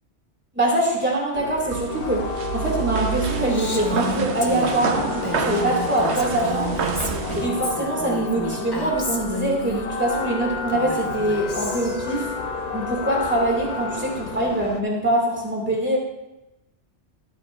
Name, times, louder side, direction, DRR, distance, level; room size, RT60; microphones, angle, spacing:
voice 1, 0.5-6.8 7.3-12.3 12.7-16.0, right 1 dB, 10° right, -3 dB, 2.3 m, -24 dB
sound 1, 1.3-14.8, left 5 dB, 45° left, 0.6 m, -31 dB
sound 2, 1.7-7.5, right 6 dB, 70° right, 1.0 m, -29 dB
Female speech woman speaking, 3.5-9.9 10.7-12.1, equal, 20° left, 0.9 m, -31 dB
13.0 x 9.0 x 2.5 m, 0.95 s
omnidirectional pair, 1.2 m